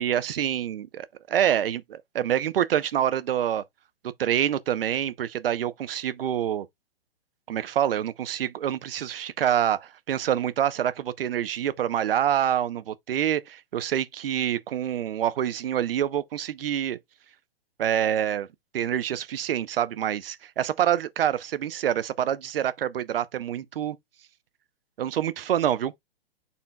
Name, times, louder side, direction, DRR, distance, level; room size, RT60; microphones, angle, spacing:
voice 1, 0.0-3.6 4.2-6.7 7.5-17.0 17.8-18.5 18.7-24.0 25.0-25.9, right 10 dB, 65° right, 0.9 m, -26 dB
10.5 x 4.3 x 2.3 m
hypercardioid pair, 125°, 31 cm